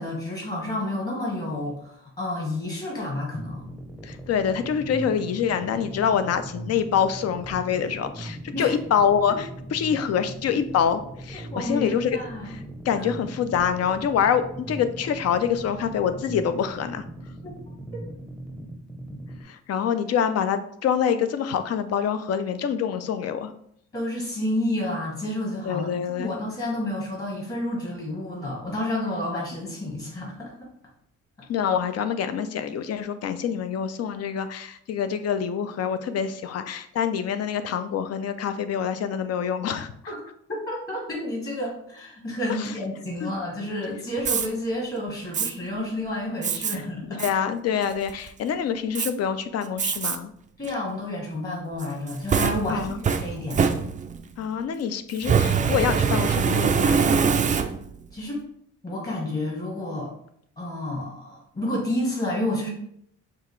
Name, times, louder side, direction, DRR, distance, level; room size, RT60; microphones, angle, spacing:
voice 1, 0.0-3.6 8.5-8.7 11.3-12.6 13.0-13.1 17.4-17.5 23.9-30.5 40.1-40.2 40.5-47.2 50.6-53.7 58.1-58.4 58.8-60.1 60.6-62.7, left 1 dB, 30° left, -2 dB, 1.5 m, -30 dB
sound 1, 3.3-19.4, right 1 dB, ahead, 0.7 m, -39 dB
voice 2, 4.0-12.2 12.5-17.0 19.5-23.5 25.6-26.3 31.5-40.1 42.6-42.7 43.2-43.3 46.7-46.8 47.2-50.3 52.7-53.0 54.4-57.3, left 8 dB, 55° left, 10 dB, 0.5 m, -26 dB
Fire, 44.2-44.5 45.3-45.5 46.4-46.7 47.2-47.3 47.8-48.3 48.9-49.1 49.8-50.2 50.6-50.7 51.8-54.3 55.2-58.0, right 6 dB, 25° right, 0.3 m, -23 dB
5.5 x 2.4 x 3.1 m, 0.69 s
cardioid pair, 90°, 30 cm